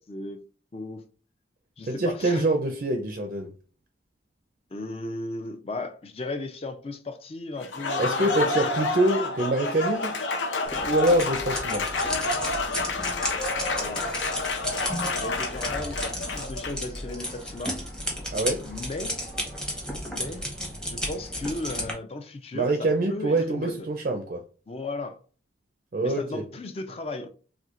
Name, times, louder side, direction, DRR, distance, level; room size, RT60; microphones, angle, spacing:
voice 1, 0.1-0.4 0.7-1.0 1.8-2.4 4.7-8.5 13.7-14.2 15.1-17.8 18.6-19.2 20.1-20.5 20.9-23.8 24.7-25.2 26.0-27.3, left 2 dB, 30° left, 0.4 m, -35 dB
voice 2, 1.9-3.5 8.0-10.2 10.8-11.9 18.3-18.6 22.5-24.4 25.9-26.4, right 2 dB, 45° right, 0.4 m, -25 dB
Applause, 7.6-17.0, left 3 dB, 80° left, 0.6 m, -29 dB
sound 1, 10.6-21.9, equal, 5° left, 0.8 m, -34 dB
4.3 x 2.4 x 2.4 m
head